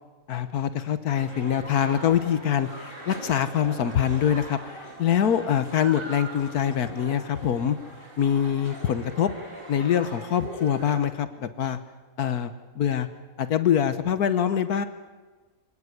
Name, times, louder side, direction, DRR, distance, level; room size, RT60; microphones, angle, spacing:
voice 1, 0.3-7.8 8.2-9.3 9.7-11.8 12.2-13.1 13.4-14.9, left 9 dB, 85° left, 11 dB, 1.6 m, -24 dB
London Indoor Playground, 1.1-11.0, right 1 dB, 35° right, 7.3 m, -41 dB
26.5 x 18.5 x 9.6 m, 1.3 s
omnidirectional pair, 1.6 m